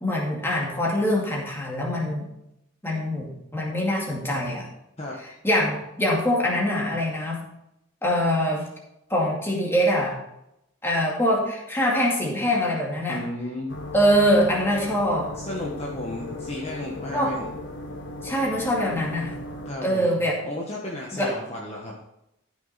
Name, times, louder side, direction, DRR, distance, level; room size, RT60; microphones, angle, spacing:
voice 1, 0.0-2.3 2.8-4.7 5.4-7.4 8.0-8.6 9.1-10.2 10.8-13.2 13.9-15.3 17.1-17.3 18.2-19.4 19.8-20.4 21.1-21.3, equal, 10° left, -2 dB, 2.2 m, -23 dB
voice 2, 13.1-13.7 15.3-17.5 19.6-21.9, left 1 dB, 30° left, -3 dB, 1.4 m, -33 dB
sound 1, 13.7-19.7, left 2 dB, 60° left, 1.5 m, -37 dB
13.5 x 6.3 x 4.2 m, 0.85 s
head